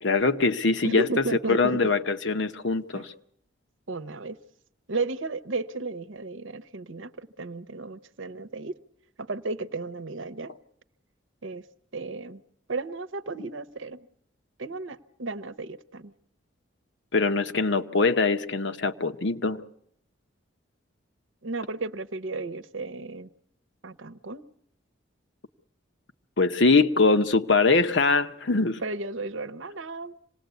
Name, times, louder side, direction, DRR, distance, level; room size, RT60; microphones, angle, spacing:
voice 1, 0.0-3.1 17.1-19.6 26.4-28.8, left 3 dB, 65° left, 0.9 m, -23 dB
voice 2, 0.8-1.9 2.9-3.0 3.9-4.4 4.9-8.8 9.2-10.5 11.4-11.6 11.9-12.4 12.7-14.1 14.6-16.1 21.4-23.3 23.8-24.5 28.8-30.2, right 3 dB, 75° right, 0.9 m, -34 dB
26.0 x 19.0 x 8.2 m
head